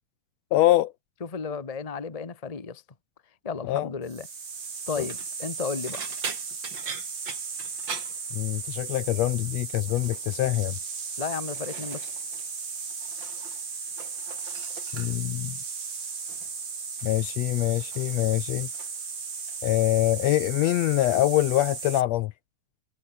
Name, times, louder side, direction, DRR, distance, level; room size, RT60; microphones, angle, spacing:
voice 1, 0.5-0.9 3.7-3.9 5.0-5.1 8.4-10.7 14.9-15.5 17.0-18.7 19.6-22.3, left 15 dB, 80° left, 1.6 m, -24 dB
voice 2, 1.2-2.8 3.4-4.3 4.9-6.0 11.2-12.1, left 5 dB, 45° left, 0.5 m, -33 dB
sound 1, 4.1-22.0, right 5 dB, 60° right, 5.5 m, -36 dB
sound 2, 4.9-5.3 5.9-8.9 9.2-9.5 9.9-10.4 11.1-12.5 12.8-13.6 13.9-15.4 16.3-16.6 17.0-19.0 19.3-19.8 20.2-20.4 21.7-21.8, right 6 dB, 40° right, 2.7 m, -42 dB
omnidirectional pair, 3.5 m